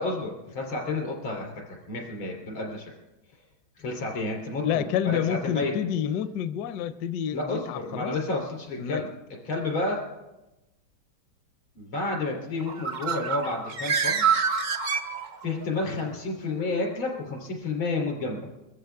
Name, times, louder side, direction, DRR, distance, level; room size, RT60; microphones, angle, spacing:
voice 1, 0.0-2.9 3.8-5.7 7.3-9.1 9.5-10.0 11.8-14.2 15.4-18.4, left 3 dB, 90° left, 0 dB, 4.1 m, -30 dB
voice 2, 4.6-8.2 8.8-9.0, left 9 dB, 70° left, 12 dB, 1.1 m, -28 dB
Bird, 12.6-15.7, right 6 dB, 75° right, 0.4 m, -27 dB
22.5 x 14.0 x 3.5 m, 1.0 s
omnidirectional pair, 2.2 m